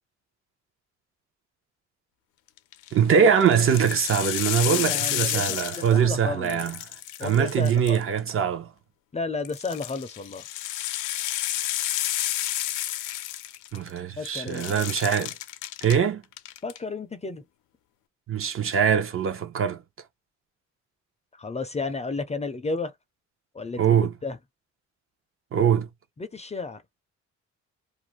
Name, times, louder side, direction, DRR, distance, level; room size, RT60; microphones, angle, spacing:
sound 1, 2.6-2.9 3.4-6.2 6.4-8.3 9.4-14.0 14.3-16.0 16.3-16.8, left 14 dB, 90° left, 0.5 m, -31 dB
voice 1, 2.9-6.8 7.2-8.7 13.7-15.3 15.8-16.2 18.3-19.8 23.8-24.1 25.5-25.9, right 7 dB, 45° right, 0.7 m, -22 dB
voice 2, 4.6-6.6 7.2-8.0 9.1-10.5 13.7-13.8 14.2-14.9 16.6-17.4 21.3-22.9 23.5-24.4 26.2-26.8, left 3 dB, 20° left, 0.5 m, -33 dB
2.5 x 2.1 x 3.1 m
cardioid pair, 90°, 30 cm